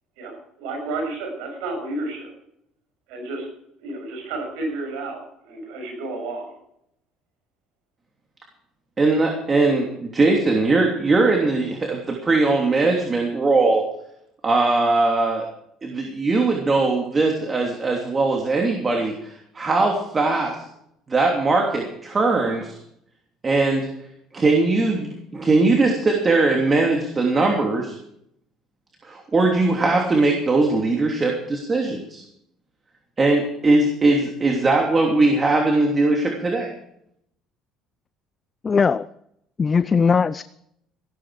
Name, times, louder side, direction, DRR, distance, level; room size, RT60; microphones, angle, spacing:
voice 1, 0.2-2.3 3.1-3.5 3.8-6.5, right 2 dB, 80° right, 6.4 m, -31 dB
voice 2, 9.0-13.9 14.4-15.5 15.8-20.6 21.1-22.8 23.4-23.9 24.3-27.9 29.0-32.2 33.2-36.7, right 3 dB, 30° right, 3.0 m, -20 dB
voice 3, 38.6-39.1 39.6-40.4, left 5 dB, 35° left, 0.5 m, -19 dB
15.5 x 13.0 x 4.9 m
supercardioid pair, 75°, 0 cm